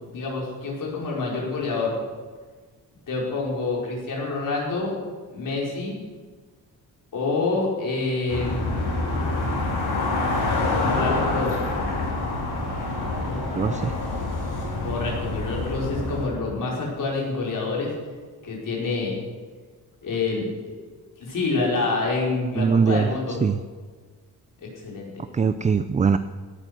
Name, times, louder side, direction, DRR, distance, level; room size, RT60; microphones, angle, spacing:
voice 1, 0.1-1.9 3.1-4.9 5.3-6.0 7.1-8.7 10.8-11.7 14.8-17.9 18.4-19.2 20.0-20.7 21.2-23.4 24.8-25.1, left 3 dB, 55° left, -3 dB, 4.7 m, -27 dB
sound 1, 8.3-16.3, left 2 dB, 90° left, 4.2 m, -26 dB
voice 2, 13.6-13.9 22.6-23.1 23.4-23.6 25.3-26.2, right 5 dB, 20° right, 12 dB, 0.3 m, -21 dB
17.0 x 10.0 x 6.2 m, 1.5 s
wide cardioid pair, 150°, 38 cm